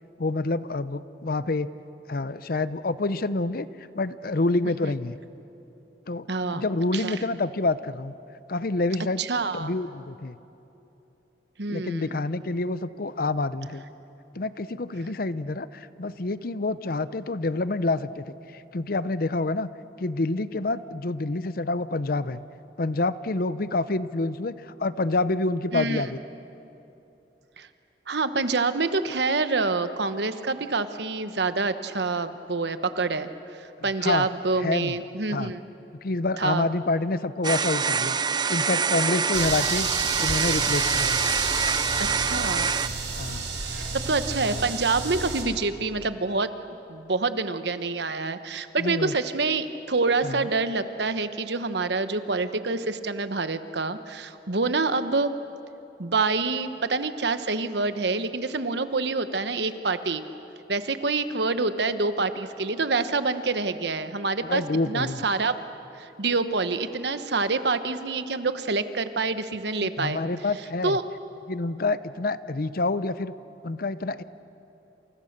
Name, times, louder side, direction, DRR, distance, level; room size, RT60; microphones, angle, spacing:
voice 1, 0.2-1.7 2.1-5.2 6.1-6.3 6.5-8.1 8.5-9.3 9.5-10.4 11.7-13.8 14.3-19.7 20.0-22.4 22.8-26.2 34.0-34.3 34.6-35.0 35.3-35.5 36.0-38.2 38.5-39.9 40.2-41.2 43.1-43.5 48.8-49.1 50.2-50.5 64.4-65.2 69.8-71.0 71.5-73.3 73.6-74.2, left 2 dB, 55° left, 15 dB, 0.7 m, -27 dB
voice 2, 6.3-6.7 6.9-7.2 9.2-9.7 11.6-12.2 25.7-26.0 27.6-27.7 28.1-33.3 33.8-35.6 36.4-36.7 42.0-42.7 43.7-46.5 46.9-55.3 56.0-60.2 60.7-65.5 66.0-70.2 70.8-71.0, right 3 dB, 70° right, 11 dB, 1.1 m, -27 dB
sound 1, 37.4-42.9, right 5 dB, 25° right, 0.6 m, -25 dB
sound 2, 39.3-45.4, right 5 dB, 90° right, 4.5 m, -30 dB
28.5 x 28.0 x 6.7 m, 2.9 s
head